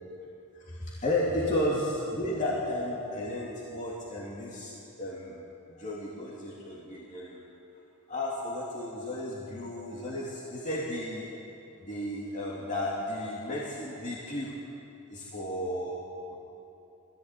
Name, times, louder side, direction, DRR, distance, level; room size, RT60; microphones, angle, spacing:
voice 1, 0.6-5.4 5.7-7.5 8.1-11.3 11.8-14.6 15.1-16.3, left 1 dB, 35° left, -5 dB, 2.8 m, -33 dB
20.0 x 14.5 x 9.2 m, 2.8 s
head